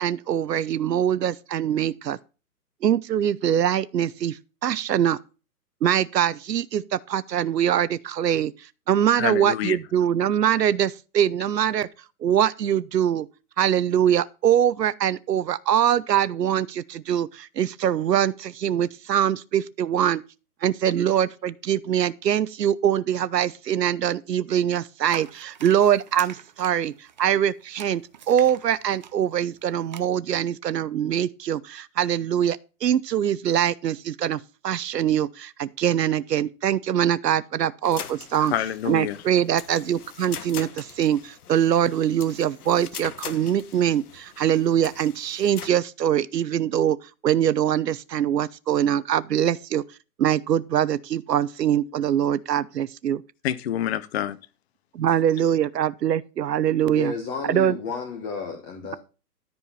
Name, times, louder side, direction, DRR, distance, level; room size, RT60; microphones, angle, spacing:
voice 1, 0.0-2.2 2.8-4.4 4.6-5.2 5.8-8.5 8.9-11.9 12.2-13.3 13.6-20.2 20.6-38.5 38.9-47.0 47.2-49.8 50.2-53.2 54.9-57.1 57.5-57.8, right 10 dB, 90° right, 0.9 m, -23 dB
voice 2, 9.2-9.8 38.4-39.2 53.4-54.4, left 11 dB, 40° left, 0.7 m, -27 dB
sound 1, 25.1-30.0, right 8 dB, 30° right, 0.5 m, -43 dB
sound 2, 37.8-45.7, left 8 dB, 70° left, 1.3 m, -41 dB
voice 3, 56.8-58.9, left 5 dB, 20° left, 1.2 m, -32 dB
13.5 x 4.7 x 5.6 m
hypercardioid pair, 155°, 47 cm